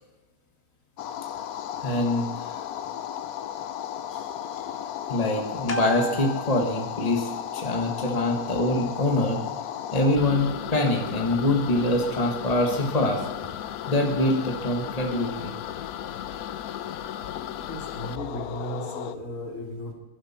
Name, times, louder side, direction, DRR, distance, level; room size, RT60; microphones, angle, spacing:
sound 1, 1.0-19.2, left 10 dB, 85° left, 1.2 m, -35 dB
voice 1, 1.8-2.5 4.1-4.3 4.6-4.7 5.1-9.4 9.9-13.2 13.9-15.5, left 1 dB, 25° left, 2 dB, 1.7 m, -24 dB
voice 2, 17.7-19.9, equal, 65° left, 0 dB, 3.5 m, -35 dB
21.0 x 11.5 x 4.3 m, 1.2 s
omnidirectional pair, 1.5 m